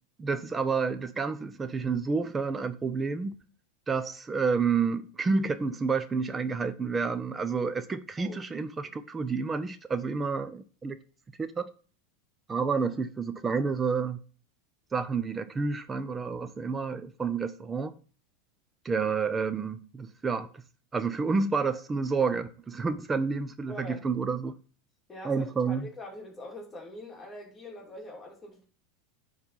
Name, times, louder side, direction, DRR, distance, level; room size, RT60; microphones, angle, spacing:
voice 1, 0.2-3.3 3.9-11.0 11.4-11.7 12.5-14.2 14.9-17.9 18.8-20.5 20.9-24.5 25.2-25.9, right 5 dB, 20° right, 0.7 m, -29 dB
voice 2, 23.7-24.0 25.1-28.6, left 1 dB, 20° left, 3.0 m, -43 dB
9.8 x 4.0 x 5.7 m
hypercardioid pair, 105°, 0 cm